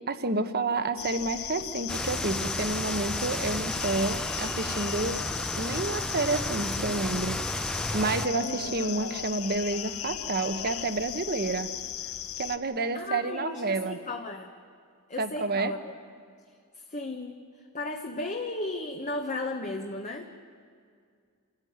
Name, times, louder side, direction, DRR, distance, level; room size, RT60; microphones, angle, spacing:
voice 1, 0.1-5.3 5.5-11.7 12.4-14.0 15.2-15.7, right 3 dB, 45° right, 10 dB, 1.2 m, -30 dB
sound 1, 1.0-12.6, left 10 dB, 70° left, 0.9 m, -37 dB
sound 2, 1.9-8.3, left 1 dB, 5° left, 0.5 m, -33 dB
voice 2, 8.4-8.7 12.9-14.5 15.1-15.9 16.7-17.4 17.7-20.4, left 2 dB, 35° left, 2 dB, 1.2 m, -35 dB
28.0 x 14.5 x 9.6 m, 2.1 s
head